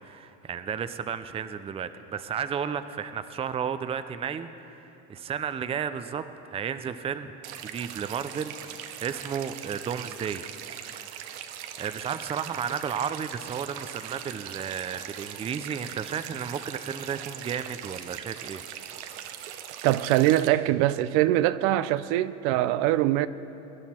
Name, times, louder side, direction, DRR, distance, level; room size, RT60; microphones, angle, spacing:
voice 1, 0.0-7.3 7.6-11.4 11.8-18.6, right 7 dB, 20° right, 0.5 m, -33 dB
sound 1, 7.4-20.5, right 10 dB, 85° right, 1.0 m, -40 dB
voice 2, 19.8-23.3, right 14 dB, 65° right, 0.5 m, -23 dB
22.5 x 10.5 x 4.3 m
supercardioid pair, 115°, 32 cm